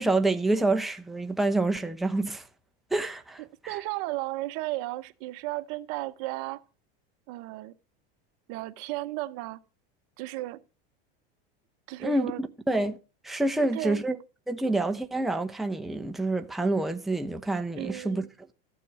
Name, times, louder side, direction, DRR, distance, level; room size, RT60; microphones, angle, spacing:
voice 1, 0.0-2.5 2.9-3.4 12.0-13.0 13.2-14.2 14.5-18.3, right 2 dB, ahead, 0.8 m, -27 dB
voice 2, 3.4-6.6 7.3-7.7 8.5-9.6 10.2-10.6 11.9-12.4 13.6-14.0 17.7-18.3, right 18 dB, 55° right, 1.0 m, -34 dB
14.0 x 7.6 x 6.3 m
supercardioid pair, 130°, 29 cm